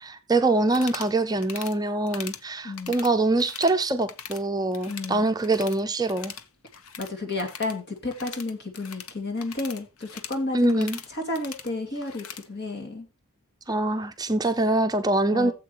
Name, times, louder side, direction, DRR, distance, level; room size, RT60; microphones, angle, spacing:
voice 1, 0.0-6.3 10.5-11.0 13.7-15.5, right 2 dB, 20° right, 0.6 m, -24 dB
sound 1, 0.7-1.1 1.4-1.8 2.1-2.4 2.7-4.4 4.7-5.8 6.1-12.5, left 7 dB, 70° left, 0.9 m, -41 dB
voice 2, 2.6-3.0 4.9-5.4 7.0-13.1 15.3-15.5, left 2 dB, 50° left, 2.5 m, -32 dB
16.0 x 7.6 x 3.0 m
head